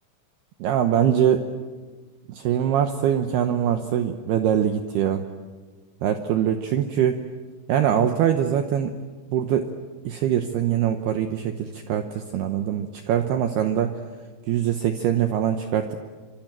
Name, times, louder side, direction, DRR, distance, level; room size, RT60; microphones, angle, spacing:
voice 1, 0.6-1.5 2.3-5.2 6.0-7.2 7.7-9.0 9.3-9.7 10.0-14.0 14.5-16.0, right 9 dB, 75° right, 7 dB, 2.4 m, -23 dB
25.5 x 25.0 x 8.9 m, 1.4 s
omnidirectional pair, 5.9 m